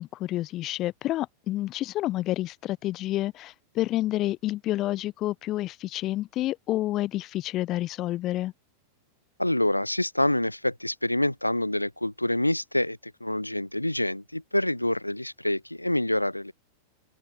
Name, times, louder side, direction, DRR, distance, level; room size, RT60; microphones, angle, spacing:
voice 1, 0.0-8.5, left 15 dB, 35° left, 6.8 m, -29 dB
voice 2, 9.4-16.5, left 1 dB, 85° left, 5.3 m, -27 dB
open air
figure-of-eight pair, 90°, 0 cm